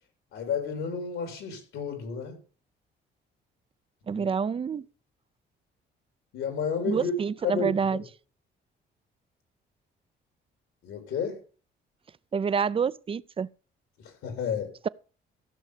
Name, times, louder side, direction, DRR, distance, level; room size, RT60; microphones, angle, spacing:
voice 1, 0.3-2.4 4.1-4.3 6.3-7.1 7.4-8.0 10.8-11.4 14.0-14.7, left 6 dB, 85° left, 3.5 m, -31 dB
voice 2, 4.1-4.9 6.9-8.0 12.3-13.5, right 6 dB, 30° right, 0.4 m, -27 dB
14.5 x 6.4 x 4.9 m
cardioid pair, 90°, 20 cm